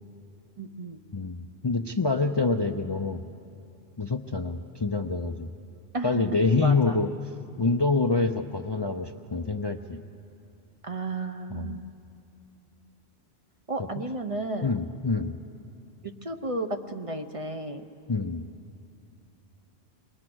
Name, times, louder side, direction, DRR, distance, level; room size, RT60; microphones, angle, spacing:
voice 1, 0.6-1.0 5.9-6.2 6.6-7.1 10.8-11.8 13.7-14.7 16.0-17.8, right 2 dB, 35° right, 5 dB, 0.8 m, -33 dB
voice 2, 1.1-3.2 4.0-5.5 6.0-7.1 7.6-10.0 11.5-11.8 13.8-13.9 14.6-15.4 18.1-18.4, left 3 dB, 30° left, 5 dB, 0.5 m, -26 dB
28.5 x 21.0 x 6.2 m, 2.7 s
omnidirectional pair, 1.1 m